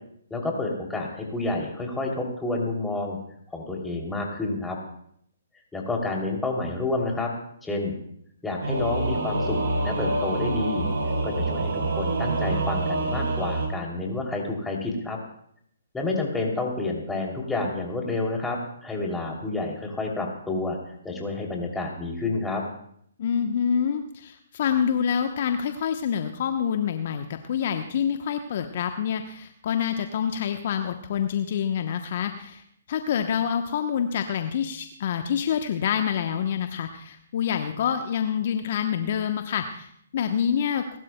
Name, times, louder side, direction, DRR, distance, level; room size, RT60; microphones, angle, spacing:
voice 1, 0.3-3.2 3.5-4.8 5.7-7.3 7.6-8.0 8.4-10.8 11.2-15.2 15.9-20.8 21.0-22.6, left 2 dB, 5° left, -1 dB, 2.9 m, -29 dB
Singing / Musical instrument, 8.6-13.7, right 2 dB, 60° right, 5.9 m, -26 dB
voice 2, 23.2-32.6 32.9-41.0, left 8 dB, 50° left, 7 dB, 0.9 m, -27 dB
30.0 x 12.5 x 2.2 m, 0.67 s
figure-of-eight pair, 135°, 0 cm